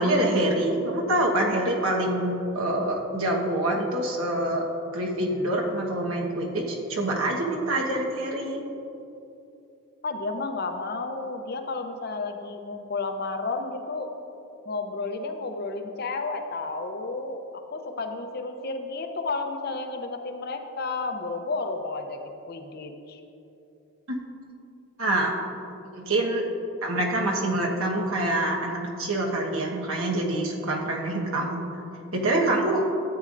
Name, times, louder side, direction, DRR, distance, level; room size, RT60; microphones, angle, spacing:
voice 1, 0.0-4.6 4.9-8.6 24.1-24.2 25.0-25.4 25.9-26.4 26.8-31.6 32.1-32.8, right 1 dB, 75° right, 0 dB, 1.3 m, -26 dB
voice 2, 10.0-14.1 14.7-17.4 17.7-23.2, left 3 dB, 45° left, 6 dB, 0.6 m, -32 dB
13.0 x 8.7 x 2.6 m, 2.8 s
head